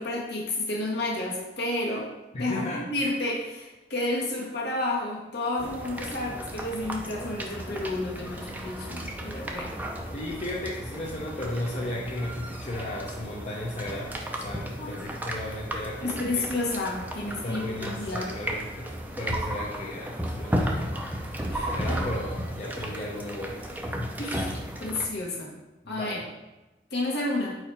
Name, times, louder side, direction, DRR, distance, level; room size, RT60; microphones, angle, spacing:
voice 1, 0.0-2.1 2.4-9.7 14.8-14.9 16.0-18.3 21.5-21.7 24.2-25.5 25.9-26.2 26.9-27.6, left 2 dB, 65° left, -3 dB, 1.4 m, -31 dB
voice 2, 2.3-2.9 10.1-16.5 17.3-20.9 21.7-23.6 24.0-24.1 25.8-26.3, left 1 dB, 40° left, -5 dB, 0.8 m, -35 dB
sound 1, 5.6-25.1, right 1 dB, 10° right, 0.6 m, -34 dB
4.8 x 4.6 x 4.5 m, 1.0 s
head